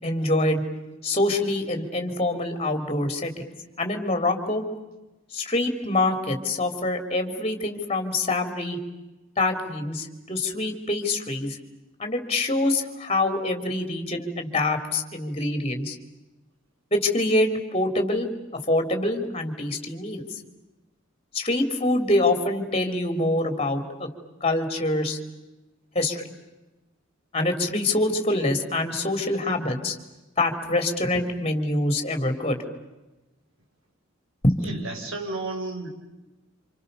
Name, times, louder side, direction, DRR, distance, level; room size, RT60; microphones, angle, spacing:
voice 1, 0.0-0.6 1.0-4.6 5.3-8.8 9.4-11.6 12.0-16.0 16.9-20.2 21.3-24.1 24.4-25.2 26.0-26.2 27.3-30.0 30.4-32.6 34.4-34.7, left 2 dB, 30° left, 6 dB, 3.5 m, -25 dB
voice 2, 34.6-35.9, right 2 dB, 80° right, 3 dB, 5.3 m, -32 dB
29.0 x 27.5 x 6.9 m, 1.0 s
head